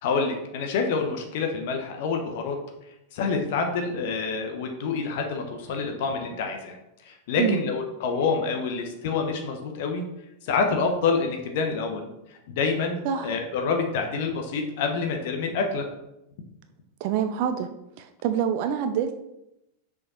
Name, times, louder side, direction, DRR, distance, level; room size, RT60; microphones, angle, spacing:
voice 1, 0.0-2.6 3.1-6.8 7.0-10.1 10.4-12.1 12.6-15.8, left 4 dB, 50° left, 4 dB, 0.9 m, -27 dB
voice 2, 13.0-13.4 17.0-17.7 18.0-19.1, right 8 dB, 45° right, 8 dB, 0.5 m, -26 dB
6.6 x 5.0 x 4.2 m, 0.88 s
figure-of-eight pair, 90°, 0 cm